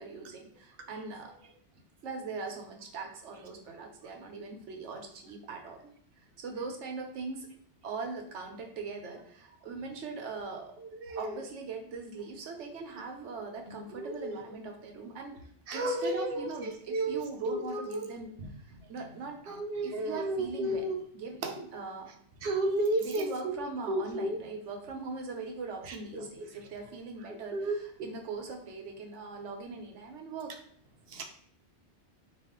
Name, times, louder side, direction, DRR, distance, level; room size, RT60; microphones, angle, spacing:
voice 1, 0.0-1.3 2.0-5.8 6.2-7.5 7.8-10.7 11.2-15.4 15.7-19.4 19.8-22.1 23.0-30.5, right 4 dB, 80° right, 2 dB, 1.1 m, -41 dB
voice 2, 14.0-14.4 15.7-16.5 16.9-18.1 19.5-21.0 21.4-21.5 22.4-23.6 23.9-24.4 25.9-26.2 27.5-27.7 28.0-28.1 31.1-31.2, right 1 dB, 60° right, 4 dB, 0.8 m, -32 dB
4.2 x 2.5 x 3.6 m, 0.63 s
omnidirectional pair, 1.2 m